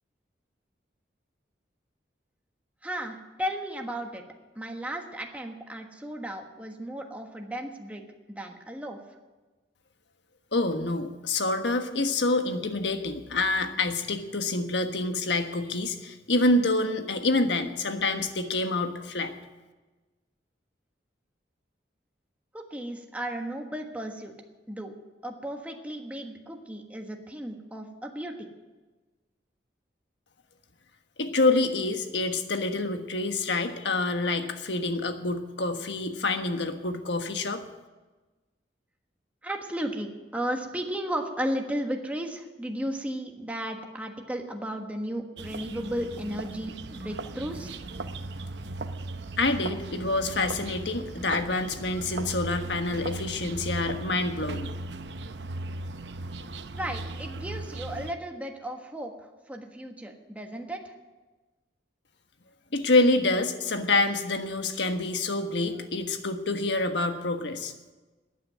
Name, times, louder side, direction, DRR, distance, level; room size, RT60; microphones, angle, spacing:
voice 1, 2.8-4.2 4.5-8.0 8.3-9.0 22.5-24.3 24.7-24.9 25.2-28.5 39.4-47.7 56.8-60.9, equal, 10° right, 2 dB, 1.4 m, -34 dB
voice 2, 10.5-19.3 31.2-37.6 49.4-54.7 62.7-67.7, left 2 dB, 80° left, 7 dB, 1.4 m, -27 dB
sound 1, 45.4-58.1, right 2 dB, 70° right, 0.8 m, -37 dB
13.5 x 9.3 x 9.4 m, 1.2 s
head